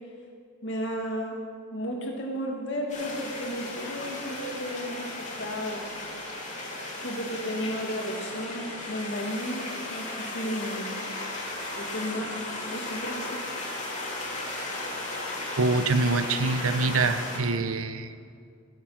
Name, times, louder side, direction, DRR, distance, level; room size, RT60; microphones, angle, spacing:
voice 1, 0.6-1.4 1.7-5.9 7.0-10.9 11.8-12.4 12.6-13.4, equal, 55° left, 0 dB, 2.0 m, -33 dB
sound 1, 2.9-17.4, left 2 dB, 35° left, 2.2 m, -35 dB
voice 2, 15.6-18.2, right 3 dB, 70° right, 11 dB, 0.7 m, -25 dB
17.0 x 7.2 x 5.9 m, 2.2 s
head